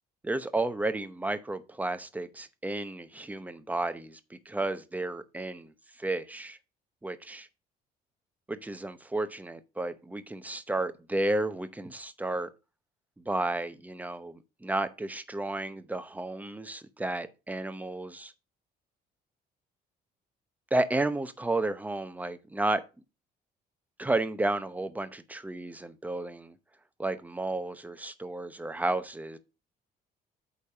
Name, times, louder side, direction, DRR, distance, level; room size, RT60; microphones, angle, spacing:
voice 1, 0.2-5.7 6.0-6.6 7.0-7.5 8.5-12.5 13.2-18.3 20.7-22.8 24.0-26.6 27.0-29.4, right 2 dB, 10° right, 0.8 m, -32 dB
8.7 x 3.4 x 5.5 m
cardioid pair, 110°, 17 cm